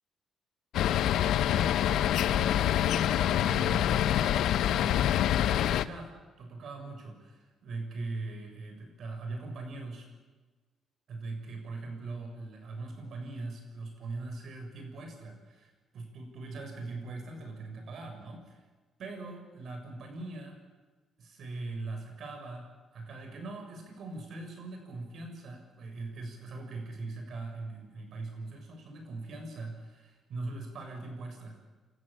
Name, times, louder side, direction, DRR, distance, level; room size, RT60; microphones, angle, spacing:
sound 1, 0.7-5.8, left 11 dB, 80° left, 0.8 m, -26 dB
voice 1, 1.5-10.1 11.1-18.6 19.0-20.6 21.2-22.7 22.9-31.6, right 3 dB, 65° right, 4 dB, 7.0 m, -41 dB
30.0 x 14.0 x 8.8 m, 1.3 s
cardioid pair, 90°, 0 cm